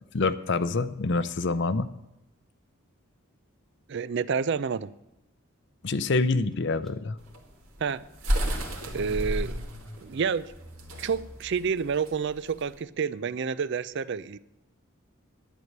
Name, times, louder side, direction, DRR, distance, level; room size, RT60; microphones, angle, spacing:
voice 1, 0.1-1.9 5.8-7.2, left 3 dB, 55° left, 0.6 m, -26 dB
voice 2, 3.9-4.9 7.8-8.0 8.9-9.6 10.0-10.5 11.0-14.4, right 6 dB, 55° right, 0.4 m, -29 dB
Car / Engine starting, 6.9-7.0 7.3-12.5, equal, ahead, 1.0 m, -47 dB
sound 1, 7.2-12.8, equal, 75° right, 2.2 m, -32 dB
11.0 x 9.4 x 6.6 m
head